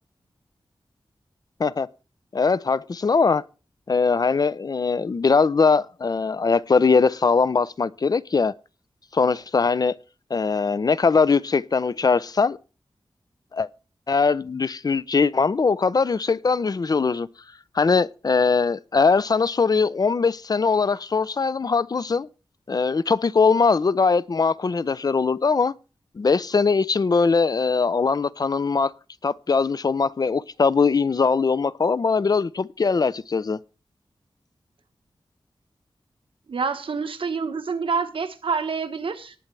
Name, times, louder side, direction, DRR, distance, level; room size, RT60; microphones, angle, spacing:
voice 1, 2.3-3.4 3.9-8.5 9.1-10.0 10.3-12.6 13.5-13.7 14.1-17.3 17.8-22.3 22.7-25.7 26.2-28.9 29.2-33.6, left 4 dB, 45° left, 0.5 m, -21 dB
voice 2, 36.5-39.3, right 5 dB, 75° right, 1.3 m, -27 dB
18.5 x 7.4 x 3.3 m
wide cardioid pair, 95°, 9 cm